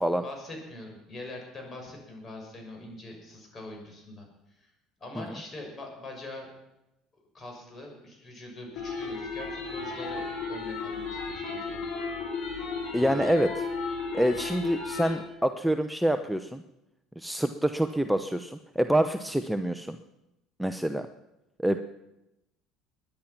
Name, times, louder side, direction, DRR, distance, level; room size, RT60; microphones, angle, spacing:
voice 1, 0.2-4.7 5.0-6.5 7.3-11.8 12.9-13.3, left 2 dB, 35° left, 2 dB, 6.3 m, -43 dB
sound 1, 8.8-15.2, left 4 dB, 65° left, 5.8 m, -34 dB
voice 2, 12.9-13.7 14.1-16.6 17.2-20.0 20.6-21.1 21.6-21.8, right 1 dB, ahead, 8 dB, 0.8 m, -26 dB
21.5 x 10.5 x 5.9 m, 0.92 s
supercardioid pair, 85°, 0 cm